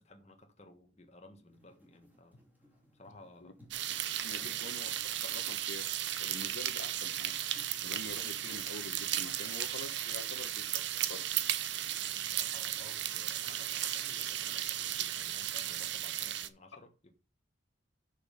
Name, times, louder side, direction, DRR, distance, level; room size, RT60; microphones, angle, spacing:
voice 1, 0.0-2.4 2.9-3.6 4.3-4.7 12.1-17.1, left 2 dB, 35° left, 1.4 m, -56 dB
sound 1, 1.5-12.1, left 1 dB, 10° right, 2.5 m, -63 dB
sound 2, 3.7-16.5, right 12 dB, 65° right, 0.6 m, -35 dB
voice 2, 4.2-4.9 5.2-7.4 7.8-11.2, left 3 dB, 75° left, 1.0 m, -46 dB
6.3 x 5.1 x 5.1 m
head